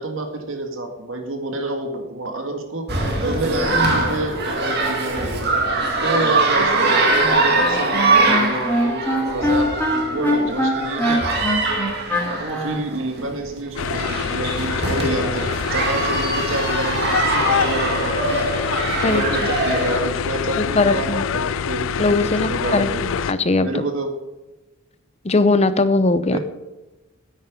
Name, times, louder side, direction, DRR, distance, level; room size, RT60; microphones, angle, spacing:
voice 1, 0.0-5.5 6.0-11.2 12.3-18.4 19.0-23.0 23.6-24.1 25.3-25.4 26.3-26.4, right 2 dB, 75° right, 4 dB, 1.9 m, -28 dB
sound 1, 2.9-19.9, right 2 dB, 55° right, 2.0 m, -22 dB
Wind instrument woodwind instrument, 7.2-12.8, equal, 10° left, 2.1 m, -22 dB
sound 2, 13.8-23.3, left 7 dB, 80° left, 0.4 m, -25 dB
voice 2, 20.6-21.3 22.0-23.7 25.2-26.4, left 3 dB, 30° left, 12 dB, 0.7 m, -19 dB
9.7 x 8.8 x 5.3 m, 1.1 s
head